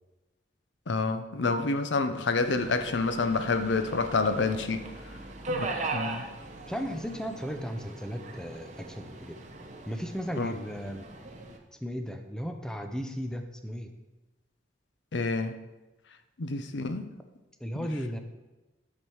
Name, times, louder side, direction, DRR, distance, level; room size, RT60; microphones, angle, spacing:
voice 1, 0.9-4.8 5.5-6.2 10.4-10.5 15.1-15.6 16.4-17.1, left 3 dB, 70° left, 10 dB, 0.6 m, -28 dB
Subway metro underground, 2.4-11.6, right 2 dB, 40° right, 1.0 m, -39 dB
voice 2, 6.7-9.4 9.9-11.0 11.8-13.9 17.6-18.2, equal, 5° left, 6 dB, 0.6 m, -35 dB
10.5 x 6.0 x 4.7 m, 1.1 s
head